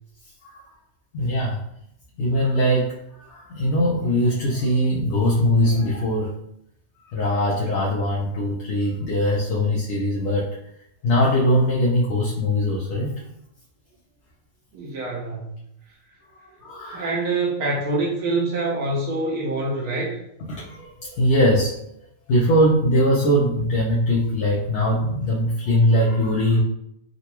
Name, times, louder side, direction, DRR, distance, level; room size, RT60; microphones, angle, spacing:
voice 1, 1.1-1.6 2.2-6.3 7.1-10.5 11.0-13.2 16.6-17.1 20.5-21.8 22.3-26.6, equal, 60° left, -5 dB, 0.8 m, -21 dB
voice 2, 14.7-15.5 15.9-16.0 16.8-20.2, right 2 dB, 85° right, -5 dB, 1.3 m, -25 dB
3.8 x 2.3 x 2.9 m, 0.77 s
omnidirectional pair, 1.5 m